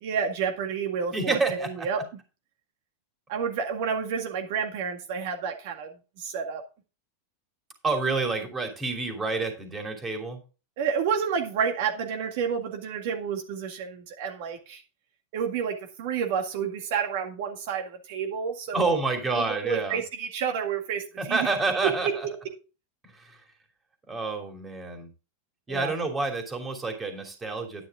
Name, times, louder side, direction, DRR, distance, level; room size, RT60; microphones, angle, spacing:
voice 1, 0.0-2.0 3.3-5.9 6.2-6.6 10.8-14.8 15.3-18.9 19.4-21.5 22.0-22.1 25.7-25.9, right 6 dB, 60° right, 4 dB, 1.9 m, -30 dB
voice 2, 1.1-2.0 7.8-10.4 18.7-20.0 21.2-22.3 23.1-23.4 24.1-25.1 25.7-27.9, right 3 dB, 15° right, 4 dB, 2.9 m, -28 dB
10.5 x 9.0 x 3.7 m, 0.32 s
supercardioid pair, 135°, 0 cm